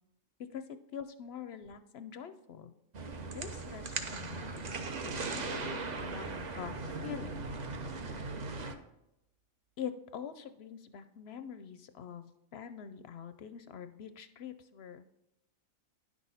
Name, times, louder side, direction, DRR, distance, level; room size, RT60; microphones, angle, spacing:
voice 1, 0.5-2.7 3.3-7.4 7.7-7.8 9.8-15.3, left 8 dB, 65° left, 11 dB, 0.7 m, -45 dB
sound 1, 2.9-8.8, right 3 dB, 40° right, 0.6 m, -38 dB
sound 2, 5.1-8.4, right 1 dB, 65° right, 3.4 m, -54 dB
10.0 x 6.2 x 4.0 m, 0.87 s
omnidirectional pair, 1.4 m